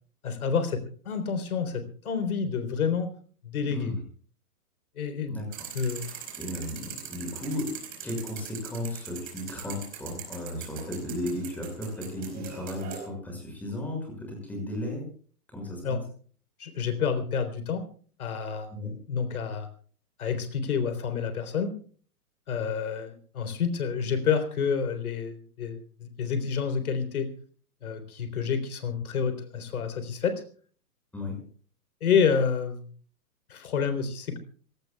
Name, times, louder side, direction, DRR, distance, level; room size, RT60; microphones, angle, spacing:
voice 1, 0.2-0.8 1.1-3.1 3.4-3.9 5.0-5.4 5.7-6.1 15.8-16.0 16.6-17.8 18.2-18.7 19.1-19.7 20.2-21.7 22.5-27.3 27.8-30.4 32.0-32.9 33.5-34.4, left 6 dB, 65° left, 9 dB, 3.9 m, -28 dB
voice 2, 5.3-5.7 6.0-7.8 8.0-15.1 15.5-16.0 18.7-18.9 31.1-31.4, left 1 dB, 5° left, 1 dB, 6.1 m, -35 dB
sound 1, 5.5-13.1, right 7 dB, 20° right, 4.8 m, -42 dB
28.0 x 18.0 x 2.3 m, 0.44 s
hypercardioid pair, 165°, 47 cm